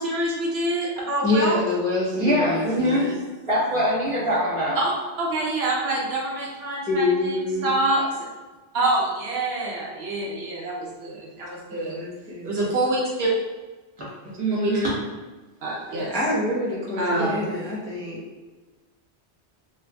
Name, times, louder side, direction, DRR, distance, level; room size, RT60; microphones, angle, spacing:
voice 1, 0.0-1.6 4.7-7.4 7.6-8.0 8.7-12.0 12.4-13.3 14.3-14.8 15.6-16.1 17.0-17.4, right 2 dB, 70° right, -3 dB, 0.9 m, -26 dB
voice 2, 1.2-3.2 6.9-7.7 11.7-12.6 16.1-18.2, left 2 dB, 5° left, -7 dB, 0.5 m, -26 dB
voice 3, 2.1-3.1 3.5-4.8 14.0-14.1 14.4-14.9 17.1-17.3, equal, 25° right, -7 dB, 1.2 m, -23 dB
2.9 x 2.4 x 3.3 m, 1.3 s
omnidirectional pair, 1.2 m